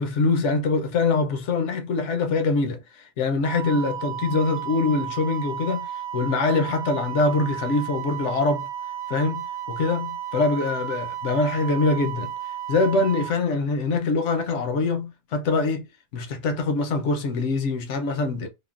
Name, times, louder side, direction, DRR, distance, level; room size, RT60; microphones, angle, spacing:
voice 1, 0.0-2.8 3.2-8.7 9.1-12.3 12.7-18.5, left 3 dB, 75° left, 1.0 m, -24 dB
Wind instrument woodwind instrument, 3.4-13.3, right 10 dB, 50° right, 0.6 m, -33 dB
3.6 x 2.1 x 2.4 m
omnidirectional pair, 1.3 m